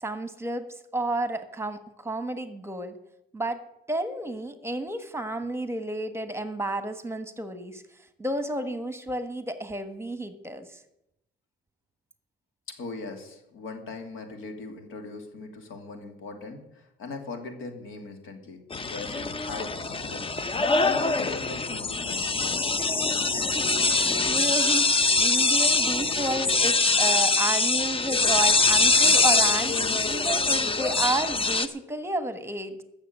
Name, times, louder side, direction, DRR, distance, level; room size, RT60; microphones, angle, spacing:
voice 1, 0.0-3.0 3.3-3.6 3.9-7.8 8.2-10.8 23.5-32.8, right 1 dB, 10° right, 10 dB, 1.4 m, -31 dB
voice 2, 12.8-20.2 20.5-22.3, left 3 dB, 85° left, 5 dB, 2.8 m, -39 dB
sound 1, 18.7-31.7, left 3 dB, 25° left, 0.9 m, -23 dB
13.5 x 7.0 x 8.9 m, 0.84 s
cardioid pair, 90°, 20 cm